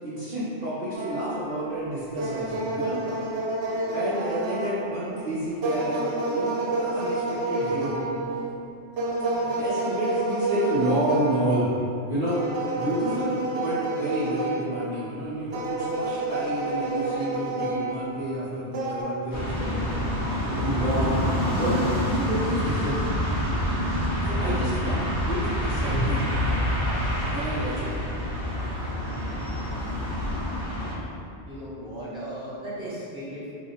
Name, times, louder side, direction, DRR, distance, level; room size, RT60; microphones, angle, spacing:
voice 1, 0.0-3.0 3.9-8.0 9.6-11.7 12.1-12.4 12.7-20.0 20.6-21.2 21.6-23.0 24.3-26.2 27.3-27.9, right 1 dB, 45° right, -12 dB, 0.7 m, -29 dB
sound 1, 0.9-1.7 2.1-5.1 5.6-8.6 9.0-11.6 12.3-15.0 15.5-18.2 18.7-19.0, right 2 dB, 85° right, 0.9 m, -29 dB
sound 2, 19.3-30.9, equal, 85° left, 1.1 m, -27 dB
voice 2, 29.9-31.2 31.5-33.5, right 1 dB, 5° right, -11 dB, 0.7 m, -38 dB
2.8 x 2.0 x 4.0 m, 2.6 s
omnidirectional pair, 1.2 m